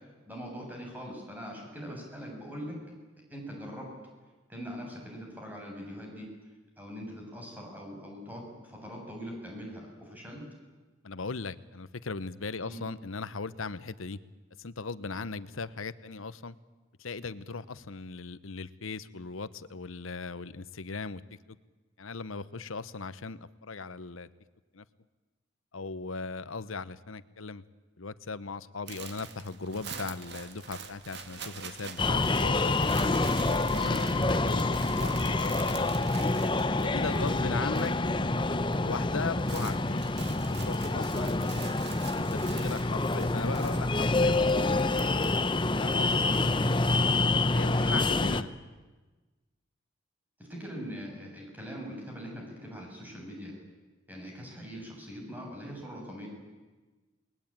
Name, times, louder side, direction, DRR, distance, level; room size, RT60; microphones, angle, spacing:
voice 1, 0.3-2.8 3.3-3.9 4.5-6.3 6.8-10.4 12.7-12.8 33.7-34.0 46.2-46.8 47.7-48.4 50.4-53.6 54.1-56.3, equal, 10° right, -1 dB, 7.8 m, -42 dB
voice 2, 11.0-14.2 14.6-16.6 17.0-21.2 22.0-24.3 24.7-24.8 25.7-27.6 28.0-32.7 33.4-35.9 36.7-37.9 38.8-40.0 40.3-41.5 42.1-44.8 45.8-46.3 47.5-48.5, left 4 dB, 90° left, 15 dB, 1.0 m, -38 dB
sound 1, 28.9-38.2 38.4-38.8 39.1-46.1, right 6 dB, 55° right, 2.1 m, -46 dB
sound 2, 32.0-48.4, left 2 dB, 25° left, 0.8 m, -27 dB
29.5 x 20.5 x 9.1 m, 1.3 s
head